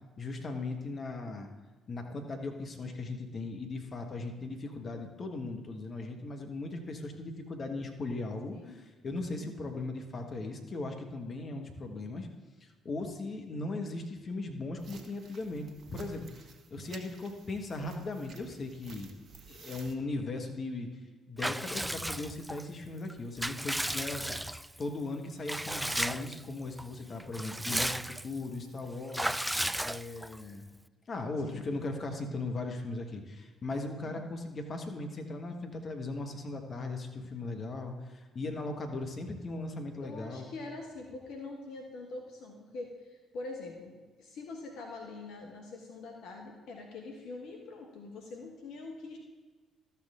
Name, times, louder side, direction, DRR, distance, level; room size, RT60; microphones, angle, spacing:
voice 1, 0.2-1.5 1.9-12.3 12.6-15.6 15.9-19.1 19.5-21.0 21.3-24.3 24.8-29.4 29.8-30.6 31.1-40.5, left 2 dB, 45° left, 4 dB, 1.5 m, -38 dB
sound 1, 14.8-20.0, right 4 dB, 50° right, 1.0 m, -53 dB
Water / Bathtub (filling or washing) / Liquid, 21.4-22.6 23.1-24.8 25.5-26.4 26.8-26.9 27.2-28.4 29.1-30.4, right 1 dB, 5° right, 0.3 m, -34 dB
voice 2, 40.0-49.2, left 3 dB, 65° left, 1 dB, 1.2 m, -44 dB
13.0 x 7.1 x 3.7 m, 1.4 s
hypercardioid pair, 45°, 0 cm